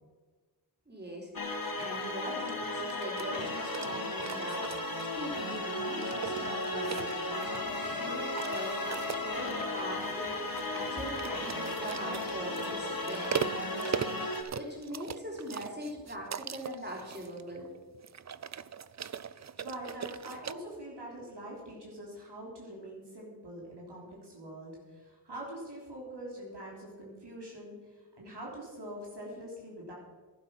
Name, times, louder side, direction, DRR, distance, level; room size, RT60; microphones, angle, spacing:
voice 1, 0.9-1.3 1.7-17.7, right 1 dB, 25° right, -2 dB, 4.1 m, -41 dB
sound 1, 1.3-14.4, left 2 dB, 55° left, 1.7 m, -35 dB
sound 2, 1.6-20.5, right 7 dB, 45° right, 0.4 m, -41 dB
Toilet flush, 7.6-14.8, left 3 dB, 70° left, 2.3 m, -51 dB
voice 2, 19.6-29.9, right 1 dB, 80° right, -3 dB, 3.5 m, -44 dB
11.5 x 11.5 x 5.8 m, 1.4 s
wide cardioid pair, 60°, 41 cm